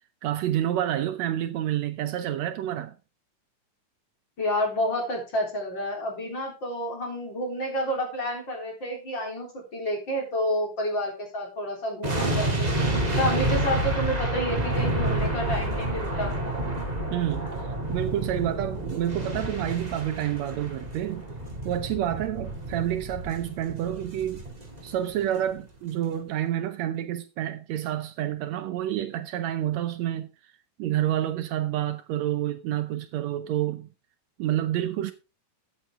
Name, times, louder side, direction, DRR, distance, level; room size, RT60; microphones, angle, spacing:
voice 1, 0.2-3.0 17.1-21.3 21.7-24.4 24.8-30.3 30.8-33.9 34.4-35.1, right 12 dB, 75° right, 1.9 m, -28 dB
voice 2, 4.4-12.8 13.2-16.3, equal, 40° left, 4.3 m, -29 dB
sound 1, 12.0-25.2 25.5-25.6, right 1 dB, 15° right, 2.3 m, -29 dB
14.0 x 8.2 x 3.6 m
omnidirectional pair, 3.4 m